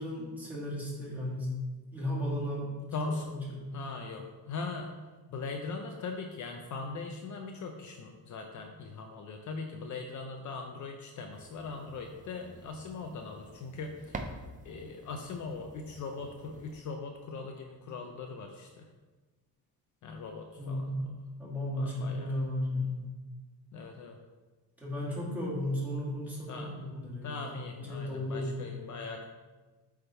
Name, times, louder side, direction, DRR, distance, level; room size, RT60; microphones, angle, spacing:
voice 1, 0.0-1.5 1.9-2.7 3.0-3.7 20.6-21.0 21.4-23.1 24.8-28.6, left 1 dB, 5° right, -7 dB, 2.0 m, -35 dB
voice 2, 2.9-3.2 3.7-4.9 5.3-14.3 14.6-18.9 20.0-22.4 23.7-24.2 26.0-26.1 26.5-26.9 27.2-29.3, left 4 dB, 50° left, 3 dB, 0.6 m, -40 dB
sound 1, 11.3-16.8, right 2 dB, 20° right, 0.4 m, -47 dB
8.0 x 3.6 x 4.4 m, 1.3 s
cardioid pair, 155°, 38 cm